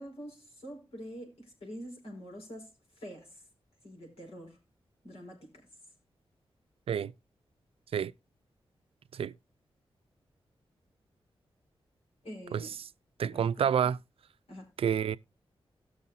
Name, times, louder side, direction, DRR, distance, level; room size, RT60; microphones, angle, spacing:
voice 1, 0.0-3.5 3.8-4.6 5.0-5.7 12.2-12.7 13.3-13.7 14.5-14.7, equal, 85° left, 5.0 m, -46 dB
voice 2, 13.2-14.0 14.8-15.2, right 8 dB, 75° right, 0.4 m, -28 dB
18.0 x 6.4 x 2.7 m
wide cardioid pair, 145°, 10 cm